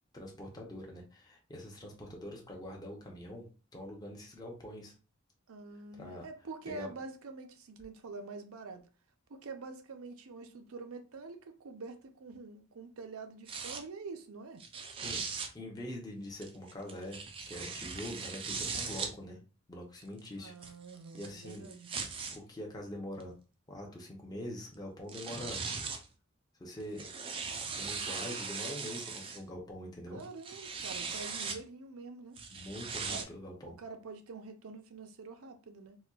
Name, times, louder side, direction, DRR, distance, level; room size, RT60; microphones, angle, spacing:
voice 1, 0.1-3.4 3.7-4.9 6.0-6.3 6.7-6.9 15.0-17.2 17.5-19.4 19.7-20.7 21.1-21.7 22.3-23.3 23.7-25.6 26.6-27.0 27.7-30.2 32.5-33.7, left 1 dB, 20° left, 0.7 m, -44 dB
voice 2, 5.5-8.9 9.3-14.6 20.4-21.9 30.1-32.4 33.1-33.3 33.6-36.0, right 4 dB, 80° right, 0.5 m, -46 dB
sound 1, 13.5-13.8 14.6-15.5 16.4-19.1 20.0-22.4 23.2-23.3 24.7-24.8 25.1-26.1 26.8-29.4 30.2-31.6 32.4-33.2, right 5 dB, 25° right, 0.4 m, -39 dB
4.2 x 2.2 x 2.3 m
head